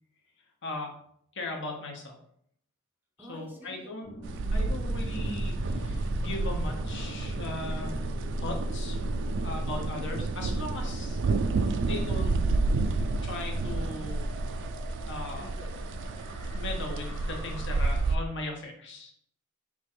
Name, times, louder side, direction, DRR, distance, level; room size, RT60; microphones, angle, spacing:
voice 1, 0.6-0.9 1.3-2.2 3.2-4.1 4.5-8.1 8.4-9.1 9.4-11.2 11.8-14.3 15.1-15.5 16.5-19.1, left 2 dB, 60° left, 1 dB, 1.0 m, -38 dB
voice 2, 3.2-4.0 9.3-9.6 15.3-15.9, left 1 dB, 10° right, 0 dB, 0.6 m, -48 dB
sound 1, 4.0-17.8, equal, 80° left, 1.2 m, -38 dB
sound 2, 4.2-18.2, right 3 dB, 60° right, 0.3 m, -31 dB
4.5 x 2.4 x 4.4 m, 0.67 s
head